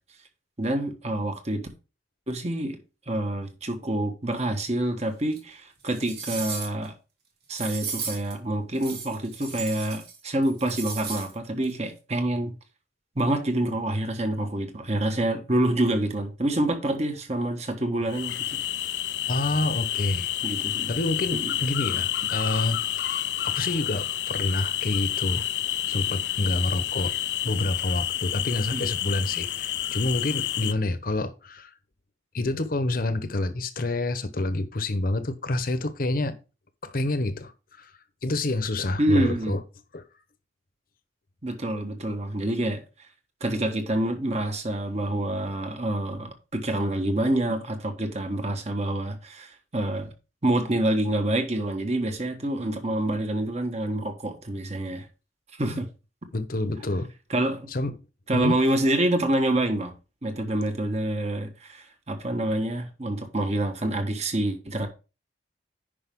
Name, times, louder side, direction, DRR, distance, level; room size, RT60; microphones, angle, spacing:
voice 1, 0.6-1.6 2.3-2.8 3.1-6.9 7.5-12.5 13.1-18.5 20.4-20.9 21.3-21.5 28.7-28.9 39.0-39.5 41.4-42.8 43.4-50.1 50.4-55.0 55.6-55.9 57.3-57.7 58.3-59.9 60.2-64.9, right 1 dB, 35° right, 1.3 m, -27 dB
sound 1, 5.3-5.4 5.9-6.9 7.5-8.3 8.8-10.2 10.4-11.3 11.6-11.7, right 5 dB, 60° right, 2.4 m, -35 dB
sound 2, 18.1-30.7, left 13 dB, 65° left, 0.4 m, -29 dB
voice 2, 19.3-20.3 20.9-25.4 25.9-27.1 27.4-31.7 32.3-36.3 36.8-37.5 37.8-37.9 38.2-39.6 39.9-40.0 55.7-55.8 56.3-57.1 57.7-57.9 58.3-58.6, left 2 dB, 50° left, 0.9 m, -28 dB
10.0 x 5.2 x 3.6 m
head